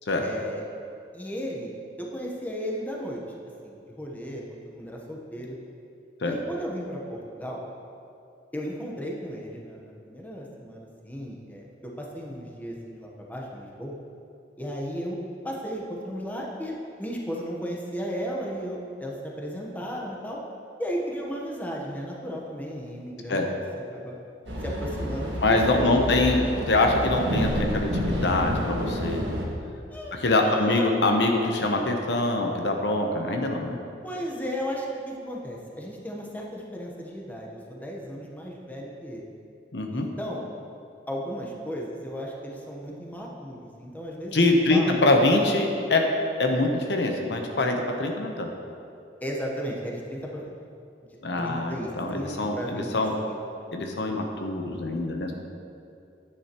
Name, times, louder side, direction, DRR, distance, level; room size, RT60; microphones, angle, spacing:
voice 1, 0.2-0.6 1.1-1.7 2.0-3.2 3.6-5.6 6.2-7.6 8.5-14.0 14.6-15.2 15.4-20.4 20.8-23.4 23.9-24.1 24.6-26.1 29.9-30.1 30.4-30.8 34.0-39.3 39.9-40.4 41.1-44.4 44.7-45.0 49.2-50.5 51.4-52.9 53.3-53.4, equal, 10° left, -2 dB, 1.0 m, -35 dB
sound 1, 24.5-29.4, equal, 90° right, 1.7 m, -29 dB
voice 2, 25.4-26.4 26.7-29.2 30.2-33.8 39.7-40.1 44.3-46.0 46.4-48.5 51.2-53.1 53.7-55.3, left 2 dB, 75° left, 3 dB, 0.9 m, -24 dB
9.9 x 9.9 x 3.0 m, 2.6 s
head